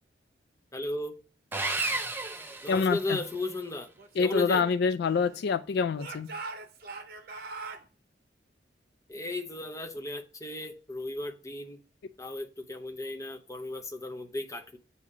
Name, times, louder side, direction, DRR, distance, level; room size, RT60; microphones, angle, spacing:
voice 1, 0.7-1.2 2.6-3.9 4.2-4.6 9.1-11.8 12.2-14.8, left 2 dB, 20° left, 4 dB, 0.8 m, -35 dB
Sawing, 1.5-3.4, right 2 dB, 10° right, 0.5 m, -33 dB
voice 2, 2.7-3.2 4.2-6.3, left 5 dB, 65° left, 12 dB, 0.3 m, -26 dB
Speech / Shout, 4.0-5.5 6.0-7.9, right 3 dB, 55° right, 0.7 m, -43 dB
8.3 x 2.8 x 4.8 m, 0.34 s
head